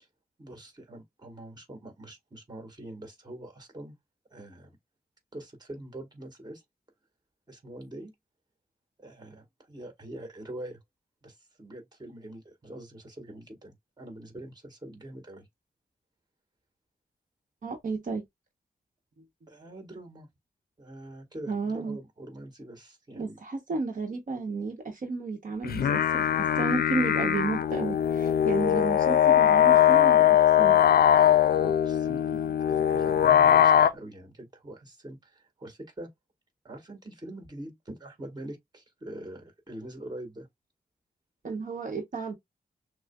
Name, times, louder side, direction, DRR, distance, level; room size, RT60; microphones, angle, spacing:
voice 1, 0.4-4.0 4.3-4.8 5.3-6.6 7.5-8.1 9.0-10.8 11.2-15.5 19.5-20.3 20.8-23.4 28.7-28.8 31.5-36.1 36.6-40.5, right 1 dB, 25° right, 1.7 m, -44 dB
voice 2, 17.6-18.2 21.5-22.0 23.2-30.8 41.4-42.4, right 4 dB, 60° right, 1.0 m, -32 dB
sound 1, 25.6-33.9, left 10 dB, 85° left, 0.4 m, -21 dB
6.2 x 2.1 x 2.3 m
wide cardioid pair, 100°, 15 cm